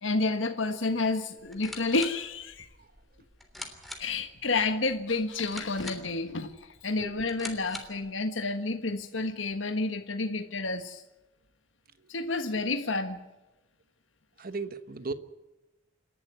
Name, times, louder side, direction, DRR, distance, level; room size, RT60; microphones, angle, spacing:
voice 1, 0.0-2.7 4.0-11.0 12.1-13.2, left 3 dB, 80° left, 7 dB, 1.5 m, -30 dB
sound 1, 1.4-8.1, left 1 dB, ahead, 3.3 m, -45 dB
voice 2, 14.4-15.1, right 3 dB, 50° right, 11 dB, 1.2 m, -36 dB
28.5 x 12.0 x 9.4 m, 1.0 s
head